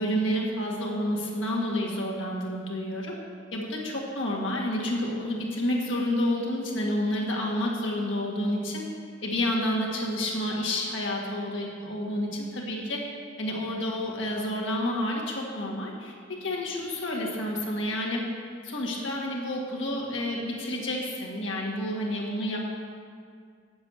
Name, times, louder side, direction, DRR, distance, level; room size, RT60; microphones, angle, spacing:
voice 1, 0.0-3.2 3.5-8.8 9.2-13.0 13.4-18.2 18.6-22.6, left 1 dB, 75° left, -2 dB, 1.7 m, -29 dB
8.3 x 7.4 x 6.3 m, 2.1 s
head